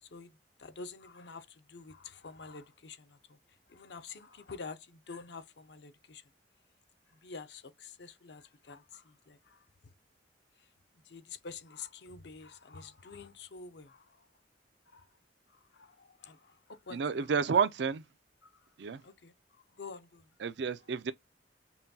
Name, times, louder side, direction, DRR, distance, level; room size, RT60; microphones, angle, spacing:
voice 1, 0.0-6.2 7.1-9.9 10.6-14.3 14.9-15.1 15.5-17.6 18.4-20.3, left 4 dB, 65° left, 0.6 m, -49 dB
voice 2, 16.9-18.0 18.8-19.0 20.4-21.1, right 6 dB, 65° right, 0.4 m, -30 dB
5.6 x 2.2 x 2.6 m
head